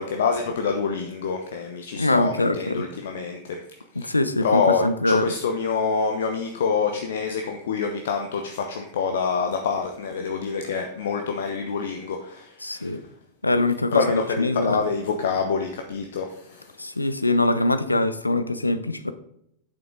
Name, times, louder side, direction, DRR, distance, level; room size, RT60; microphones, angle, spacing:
voice 1, 0.0-3.4 4.4-12.2 13.9-16.3, left 5 dB, 60° left, 0.9 m, -26 dB
voice 2, 2.0-2.9 3.9-5.4 12.6-13.0 13.4-14.9 16.8-19.1, left 2 dB, 85° left, 0.6 m, -23 dB
8.9 x 7.1 x 3.9 m
figure-of-eight pair, 90°, 0 cm